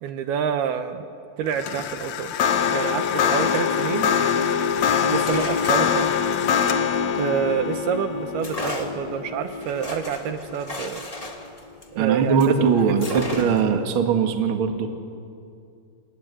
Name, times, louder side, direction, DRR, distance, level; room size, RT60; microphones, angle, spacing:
voice 1, 0.0-1.1 1.4-2.4 2.7-4.1 5.1-6.1 7.1-11.0 11.9-12.7 13.1-13.3, right 8 dB, 75° right, 8 dB, 2.7 m, -27 dB
sound 1, 1.5-10.8, left 7 dB, 90° left, 1.6 m, -24 dB
sound 2, 4.7-7.8 8.4-12.6 13.0-13.8, left 1 dB, 35° left, 0.5 m, -36 dB
voice 2, 12.0-14.9, right 6 dB, 45° right, 5 dB, 1.8 m, -21 dB
26.5 x 22.5 x 9.9 m, 2.5 s
omnidirectional pair, 5.0 m